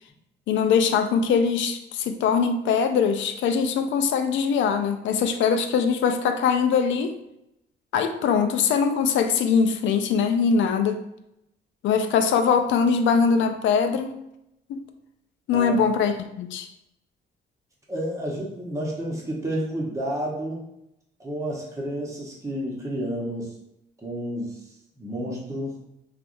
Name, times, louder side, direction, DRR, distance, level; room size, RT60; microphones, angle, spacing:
voice 1, 0.5-7.2 7.9-11.0 11.8-14.2 14.7-14.8 15.5-16.7, left 6 dB, 70° left, 7 dB, 0.4 m, -22 dB
voice 2, 17.9-20.7 21.2-23.5 24.0-24.6 25.0-25.8, equal, 15° right, -3 dB, 0.9 m, -30 dB
3.4 x 2.3 x 2.5 m, 0.82 s
cardioid pair, 90°, 20 cm